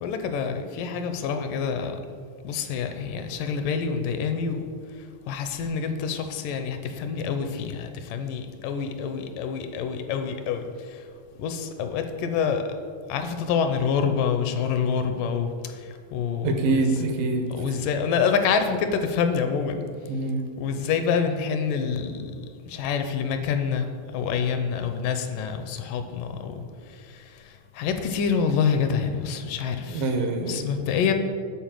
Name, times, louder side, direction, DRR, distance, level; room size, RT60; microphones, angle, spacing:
voice 1, 0.0-2.0 2.4-4.7 5.3-11.0 11.4-12.6 13.1-16.8 17.6-19.8 20.6-22.3 22.7-30.1 30.5-31.1, left 6 dB, 80° left, 7 dB, 2.2 m, -27 dB
voice 2, 16.4-17.6 20.1-20.4 29.9-30.6, right 3 dB, 80° right, 5 dB, 2.7 m, -25 dB
10.5 x 4.3 x 7.5 m, 2.1 s
omnidirectional pair, 4.0 m